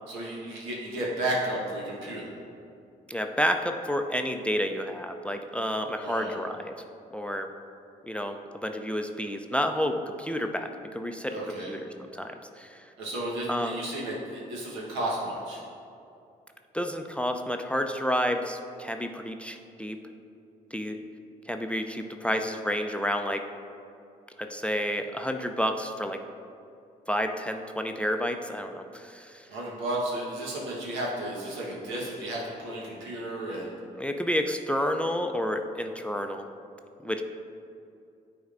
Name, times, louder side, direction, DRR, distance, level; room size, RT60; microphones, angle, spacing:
voice 1, 0.1-2.3 6.0-6.3 11.3-11.7 13.0-15.6 29.5-33.7, right 1 dB, 85° right, -4 dB, 1.2 m, -33 dB
voice 2, 3.1-6.7 7.1-7.5 8.1-11.4 11.7-12.9 13.5-13.7 16.7-20.0 20.7-21.0 21.5-23.4 24.4-26.2 27.1-29.5 34.0-36.4 37.0-37.2, equal, 5° left, 6 dB, 0.4 m, -30 dB
9.4 x 4.3 x 2.5 m, 2.5 s
supercardioid pair, 50°, 19 cm